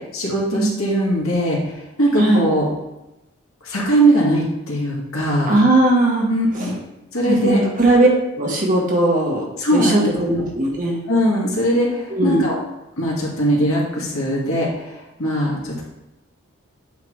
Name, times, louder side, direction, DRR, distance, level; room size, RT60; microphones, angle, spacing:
voice 1, 0.1-1.6 2.0-2.7 3.6-5.5 6.3-6.7 7.1-7.6 9.6-10.1 11.1-12.6 13.0-15.8, right 1 dB, 80° left, -4 dB, 1.9 m, -20 dB
voice 2, 5.5-6.3 6.5-6.7 7.3-8.1 8.3-9.4 9.7-11.0 12.1-12.4, right 1 dB, 40° right, -2 dB, 1.4 m, -18 dB
8.2 x 3.9 x 3.2 m, 0.97 s
head